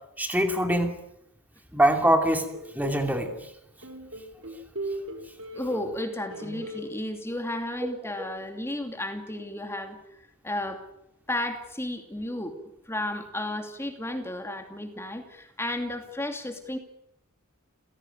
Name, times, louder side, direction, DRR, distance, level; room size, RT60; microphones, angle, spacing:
voice 1, 0.2-0.9 1.7-2.4 2.7-3.3, right 1 dB, 5° right, 5 dB, 2.8 m, -23 dB
sound 1, 2.5-3.4 3.8-6.0 6.3-6.9, right 1 dB, 60° right, 5.7 m, -37 dB
voice 2, 5.5-10.0 10.4-10.8 11.3-16.8, left 1 dB, 10° left, 6 dB, 2.7 m, -33 dB
29.5 x 17.5 x 9.3 m, 0.81 s
head